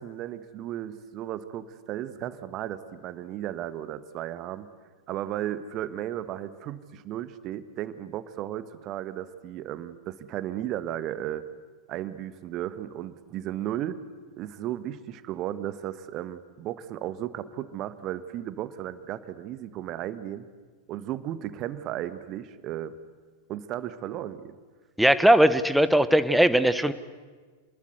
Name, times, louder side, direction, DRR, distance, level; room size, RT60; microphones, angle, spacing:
voice 1, 0.0-4.7 5.1-11.4 11.9-14.0 14.4-20.5 20.9-23.0 23.5-24.6, right 12 dB, 35° right, 13 dB, 1.4 m, -35 dB
voice 2, 25.0-26.9, right 1 dB, ahead, 13 dB, 1.2 m, -19 dB
28.0 x 21.0 x 8.2 m, 1.4 s
figure-of-eight pair, 90°, 0 cm